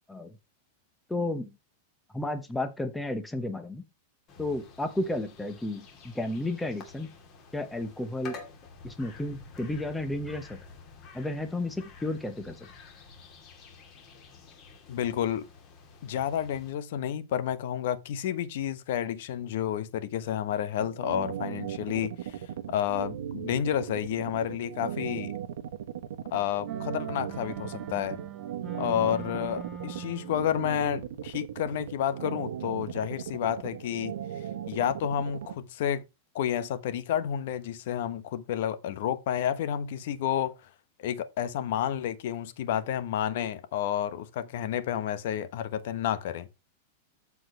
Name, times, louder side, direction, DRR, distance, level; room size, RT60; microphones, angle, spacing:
voice 1, 1.1-1.5 2.1-3.8 4.4-5.8 6.1-7.1 7.5-8.4 8.8-10.6 11.1-12.5, left 1 dB, 5° left, 0.9 m, -32 dB
sound 1, 4.3-16.7, left 4 dB, 25° left, 2.6 m, -49 dB
voice 2, 14.9-15.5 16.0-22.4 22.7-25.3 26.3-28.2 28.8-36.0 36.3-40.7 41.0-46.5, left 10 dB, 55° left, 1.0 m, -30 dB
sound 2, 20.8-35.5, right 10 dB, 80° right, 1.3 m, -37 dB
sound 3, 26.7-30.5, right 7 dB, 20° right, 1.2 m, -42 dB
14.0 x 4.8 x 3.1 m
supercardioid pair, 170°, 0 cm